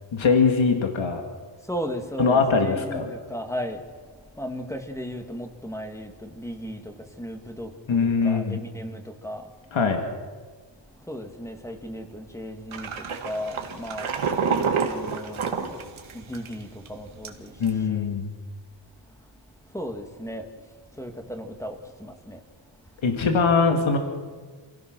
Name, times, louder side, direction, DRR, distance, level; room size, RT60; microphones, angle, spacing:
voice 1, 0.1-1.2 2.2-3.1 7.9-8.6 9.7-10.0 17.6-18.3 23.0-24.0, left 5 dB, 75° left, 3 dB, 2.3 m, -21 dB
voice 2, 1.7-3.0 3.3-3.8 4.4-7.7 8.0-9.4 11.1-12.9 13.2-14.1 14.8-15.8 16.1-17.5 17.9-18.1 19.7-20.5 21.0-22.4, equal, 5° left, 4 dB, 2.1 m, -35 dB
sound 1, 12.7-16.5 16.9-17.0 17.2-17.7, right 6 dB, 85° right, 2.2 m, -28 dB
27.5 x 17.0 x 6.2 m, 1.5 s
wide cardioid pair, 140°, 47 cm